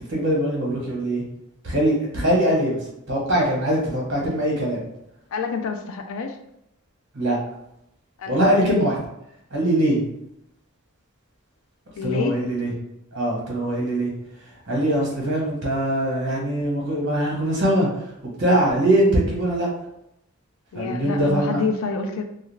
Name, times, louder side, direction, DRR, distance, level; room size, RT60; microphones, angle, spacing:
voice 1, 0.1-1.2 1.6-4.8 7.1-7.4 8.3-9.0 9.5-10.0 12.0-12.7 13.1-14.1 14.7-17.9 18.4-19.7 20.7-21.6, right 1 dB, 55° right, -3 dB, 1.0 m, -22 dB
voice 2, 5.3-6.4 8.2-8.6 12.0-12.3 20.7-22.2, left 4 dB, 65° left, 5 dB, 0.4 m, -27 dB
2.3 x 2.3 x 3.2 m, 0.80 s
head